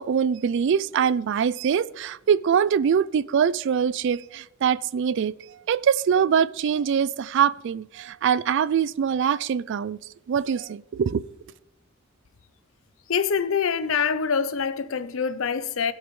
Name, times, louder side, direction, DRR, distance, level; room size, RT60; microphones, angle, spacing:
voice 1, 0.0-5.3 5.7-10.0 10.3-11.3, right 7 dB, 60° right, 0.3 m, -23 dB
voice 2, 13.1-15.9, left 6 dB, 65° left, 0.6 m, -25 dB
20.0 x 8.1 x 3.2 m
head